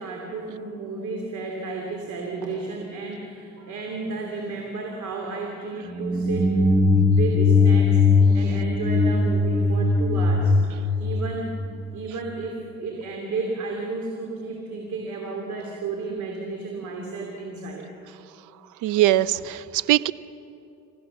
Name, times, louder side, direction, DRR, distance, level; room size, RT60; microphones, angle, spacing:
voice 1, 0.0-11.6 11.9-17.9 19.3-19.4, right 3 dB, 75° right, 1 dB, 2.8 m, -33 dB
sound 1, 5.9-11.9, left 3 dB, 15° right, 2.0 m, -20 dB
voice 2, 18.8-20.1, right 14 dB, 90° right, 19 dB, 0.5 m, -21 dB
26.5 x 15.5 x 7.1 m, 2.7 s
cardioid pair, 90°, 30 cm